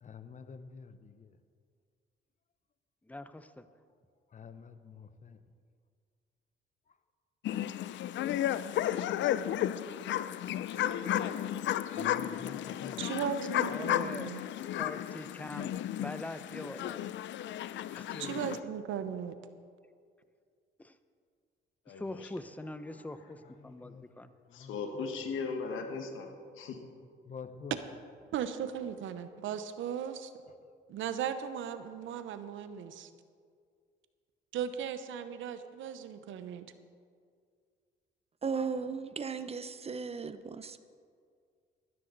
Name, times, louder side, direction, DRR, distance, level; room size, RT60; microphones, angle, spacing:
voice 1, 0.0-1.4 4.3-5.4 6.9-7.0 11.9-13.1 23.0-23.1 23.4-24.1 24.5-25.3 27.2-27.8 28.2-28.3, left 5 dB, 40° left, 11 dB, 0.8 m, -49 dB
voice 2, 3.1-3.7 13.7-14.4 14.8-15.7 16.0-17.0 17.9-18.6 20.8-21.0 21.9-24.3, left 2 dB, 5° left, 12 dB, 0.6 m, -43 dB
sound 1, 7.4-18.6, left 12 dB, 70° left, 0.5 m, -33 dB
voice 3, 10.6-11.4 11.8-12.2 12.6-12.9 21.9-22.3 24.5-26.8, left 4 dB, 85° left, 5 dB, 1.6 m, -39 dB
voice 4, 13.0-14.4 18.2-19.4 28.3-30.3 30.9-33.1 34.5-36.7, right 8 dB, 80° right, 10 dB, 0.9 m, -37 dB
voice 5, 38.4-40.8, right 5 dB, 30° right, 12 dB, 0.7 m, -36 dB
14.0 x 13.0 x 4.0 m, 2.1 s
cardioid pair, 90°, 20 cm